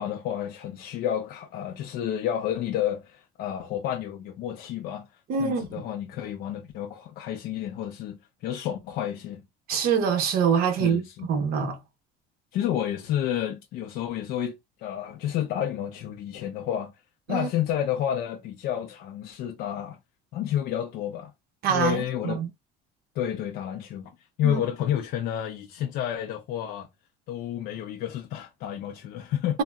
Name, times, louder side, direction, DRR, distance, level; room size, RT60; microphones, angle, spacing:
voice 1, 0.0-5.1 5.4-9.4 10.7-11.3 12.5-14.5 14.8-16.9 17.3-20.0 20.3-21.3 21.7-22.4 23.2-24.1 24.4-26.9 27.3-29.6, left 10 dB, 55° left, 0.4 m, -30 dB
voice 2, 5.3-5.7 9.7-11.0 11.3-11.8 17.3-17.5 21.6-22.5 24.4-24.6, right 6 dB, 55° right, 0.8 m, -24 dB
3.5 x 2.1 x 2.2 m
cardioid pair, 155°, 18 cm